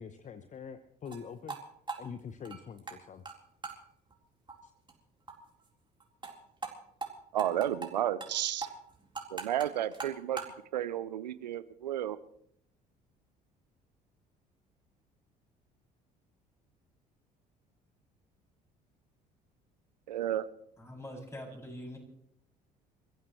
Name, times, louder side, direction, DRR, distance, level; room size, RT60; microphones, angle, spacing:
voice 1, 0.0-1.6 2.0-3.2 4.6-4.7, left 6 dB, 35° left, 11 dB, 1.0 m, -44 dB
sound 1, 1.0-1.2 1.5-1.6 1.9-3.0 3.2-3.3 3.6-3.8 4.1-4.2 4.5-4.6 4.9-5.0 5.3-5.4 5.6-5.7 6.0-6.3 6.6-6.7 7.0-7.1 7.4-7.9 8.2-8.3 8.6-10.5, right 4 dB, 20° right, 4.1 m, -40 dB
voice 2, 7.3-8.7 9.3-10.4 10.7-12.2 20.1-20.5, right 11 dB, 80° right, 16 dB, 0.6 m, -32 dB
voice 3, 20.8-22.0, equal, 15° left, 0 dB, 7.1 m, -44 dB
28.5 x 15.0 x 3.2 m, 0.70 s
figure-of-eight pair, 55°, 21 cm